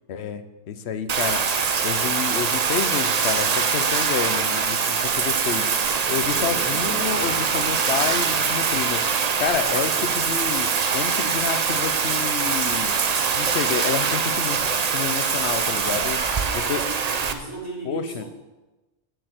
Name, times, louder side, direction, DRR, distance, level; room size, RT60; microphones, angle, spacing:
voice 1, 0.1-1.4 1.8-5.6 6.1-9.0 9.4-12.9 13.3-14.6 14.9-16.2 16.7-16.8 17.9-18.2, left 7 dB, 65° left, 10 dB, 1.0 m, -29 dB
Bathtub (filling or washing), 1.1-17.3, right 6 dB, 45° right, 0.6 m, -23 dB
sound 1, 4.9-10.8, right 6 dB, 85° right, 1.1 m, -40 dB
voice 2, 5.6-6.1 9.5-10.1 11.1-11.4 16.2-18.3, right 2 dB, 20° right, -8 dB, 3.8 m, -37 dB
7.6 x 6.9 x 8.0 m, 1.1 s
omnidirectional pair, 1.2 m